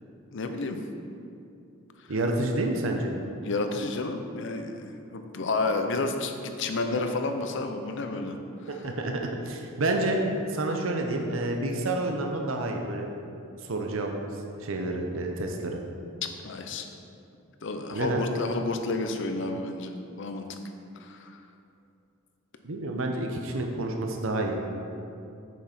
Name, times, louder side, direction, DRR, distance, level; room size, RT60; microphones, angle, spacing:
voice 1, 0.3-0.8 2.0-2.1 3.4-8.4 8.6-8.9 16.4-16.9 17.6-20.5 21.0-21.4, left 3 dB, 65° left, 6 dB, 0.7 m, -31 dB
voice 2, 2.1-3.1 8.7-9.1 9.4-10.2 10.5-13.1 13.6-14.1 14.6-15.8 17.9-18.2 22.6-24.6, right 2 dB, 75° right, 2 dB, 0.8 m, -29 dB
8.3 x 6.1 x 4.3 m, 2.6 s
head